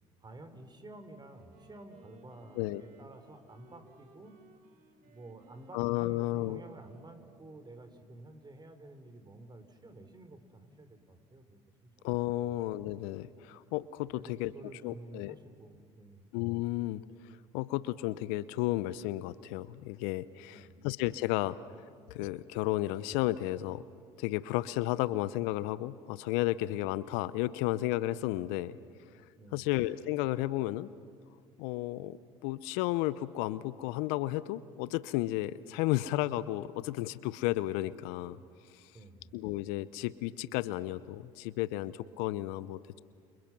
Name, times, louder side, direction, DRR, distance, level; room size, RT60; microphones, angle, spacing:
voice 1, 0.2-4.4 5.0-12.1 12.4-12.6 14.1-16.3 20.5-20.9 29.4-29.7 38.9-39.3, right 2 dB, 25° right, 8 dB, 4.0 m, -51 dB
Wind instrument woodwind instrument, 1.1-7.8, right 1 dB, 60° right, 5.0 m, -61 dB
voice 2, 5.7-6.6 12.0-14.5 14.8-15.4 16.3-21.6 22.1-23.8 24.2-28.8 29.5-30.9 31.6-32.2 32.4-38.4 38.7-38.8 39.3-43.0, left 16 dB, 70° left, 17 dB, 0.8 m, -33 dB
30.0 x 27.5 x 6.1 m, 2.2 s
hypercardioid pair, 65°, 16 cm